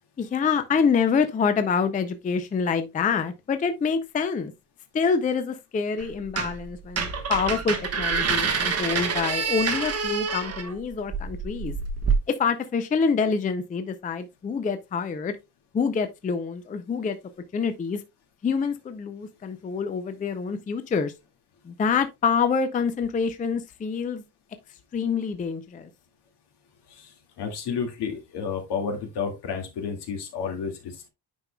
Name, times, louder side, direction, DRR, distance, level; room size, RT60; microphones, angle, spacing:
voice 1, 0.2-4.5 4.9-11.7 12.3-15.4 15.7-17.2 17.5-18.0 18.4-21.1 21.6-24.2 24.9-25.9, left 5 dB, 20° left, 0.4 m, -26 dB
sound 1, 6.0-6.6 6.9-12.1, right 5 dB, 35° right, 1.2 m, -27 dB
voice 2, 26.9-31.1, left 6 dB, 70° left, 2.1 m, -31 dB
9.1 x 5.3 x 2.2 m
cardioid pair, 175°, 41 cm